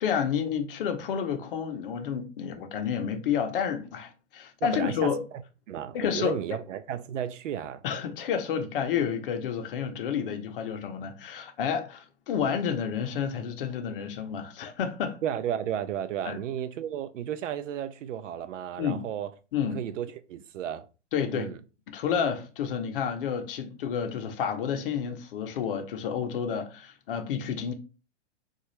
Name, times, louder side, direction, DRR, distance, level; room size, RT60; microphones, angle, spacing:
voice 1, 0.0-5.2 5.9-6.3 7.8-15.2 16.2-16.4 18.8-19.0 19.5-19.8 21.1-21.5 21.9-27.7, left 7 dB, 45° left, 0.6 m, -30 dB
voice 2, 4.6-5.1 5.7-7.8 15.2-19.3 19.7-20.9 21.3-21.6, right 10 dB, 75° right, 0.5 m, -33 dB
3.7 x 2.4 x 3.0 m
hypercardioid pair, 150°, 37 cm